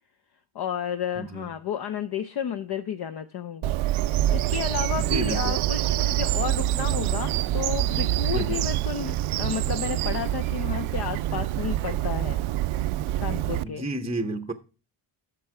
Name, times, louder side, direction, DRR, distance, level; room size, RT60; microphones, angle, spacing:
voice 1, 0.5-3.7 4.0-12.4 13.2-13.9, left 8 dB, 50° left, 0.7 m, -32 dB
voice 2, 1.2-1.5 5.0-5.5 8.3-8.7 13.6-14.5, right 2 dB, 10° right, 0.7 m, -32 dB
Bird vocalization bird call bird song, 3.6-13.6, right 14 dB, 70° right, 0.5 m, -26 dB
11.5 x 6.8 x 4.8 m
cardioid pair, 120°, 50 cm